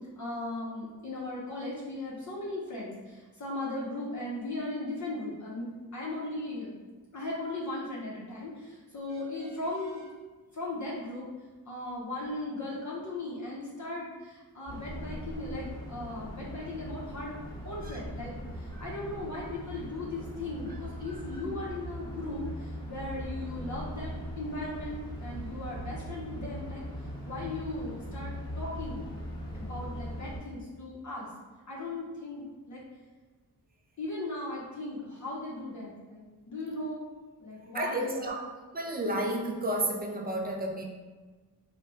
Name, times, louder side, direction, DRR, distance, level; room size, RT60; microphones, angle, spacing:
voice 1, 0.2-6.7 7.1-10.1 10.5-11.3 11.7-17.4 17.6-26.8 27.2-29.1 29.5-31.3 31.7-32.8 34.0-37.1 37.4-38.3, left 2 dB, 45° left, -5 dB, 0.7 m, -37 dB
sound 1, 14.7-30.4, equal, 10° left, 1.0 m, -40 dB
voice 2, 37.7-38.5 38.7-40.8, right 1 dB, 25° right, 1 dB, 0.4 m, -31 dB
3.0 x 2.2 x 3.3 m, 1.3 s
wide cardioid pair, 95°, 39 cm